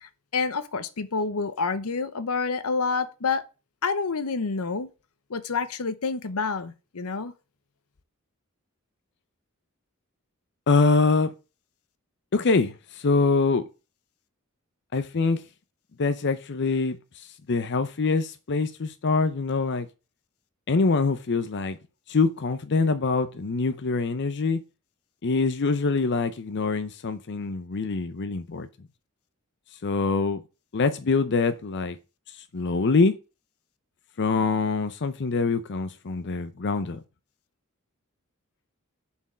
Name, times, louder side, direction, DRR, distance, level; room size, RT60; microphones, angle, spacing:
voice 1, 0.0-3.5 3.8-4.9 5.3-7.3, left 4 dB, 80° left, 0.8 m, -28 dB
voice 2, 10.7-11.3 12.3-13.6 14.9-15.4 16.0-17.0 17.5-19.9 20.7-21.8 22.1-24.6 25.2-28.7 29.8-30.4 30.7-32.0 32.5-33.1 34.2-37.0, left 4 dB, 55° left, 0.6 m, -24 dB
6.9 x 4.6 x 6.1 m
head